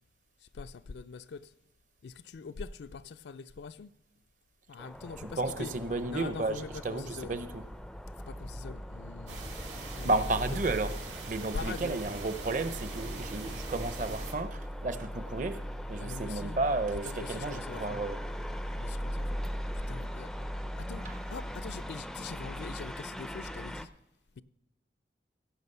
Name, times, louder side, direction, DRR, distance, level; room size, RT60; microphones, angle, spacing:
voice 1, 0.5-1.5 2.0-3.9 4.7-5.7 6.1-7.4 8.3-9.4 9.9-10.1 11.5-12.0 16.0-16.6 17.0-18.0 18.7-19.3 19.9-20.3 20.8-21.0 21.3-23.9, left 4 dB, 75° left, 0.4 m, -43 dB
sound 1, 4.8-23.9, equal, ahead, 0.3 m, -39 dB
voice 2, 5.2-7.6 10.0-11.0 11.3-15.6 15.9-18.2 21.0-21.2, right 2 dB, 45° right, 0.7 m, -33 dB
sound 2, 9.3-14.3, right 3 dB, 85° right, 2.5 m, -42 dB
16.5 x 6.1 x 5.4 m
head